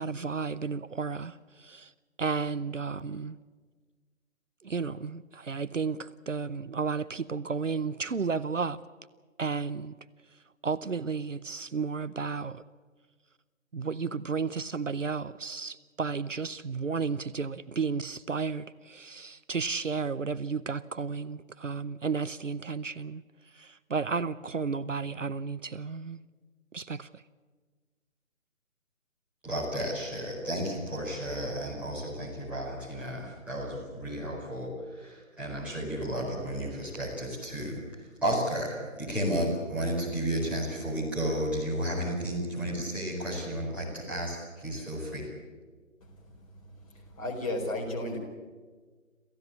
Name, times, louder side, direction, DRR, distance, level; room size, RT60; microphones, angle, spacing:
voice 1, 0.0-1.9 2.2-3.4 4.6-8.8 9.4-9.9 10.6-12.6 13.7-23.2 23.6-26.2 26.7-27.1, right 5 dB, 70° right, 0.8 m, -33 dB
voice 2, 29.4-45.3, equal, 5° right, 4.9 m, -33 dB
voice 3, 47.2-48.2, left 1 dB, 25° left, 4.4 m, -32 dB
27.5 x 15.5 x 8.5 m
figure-of-eight pair, 145°, 40 cm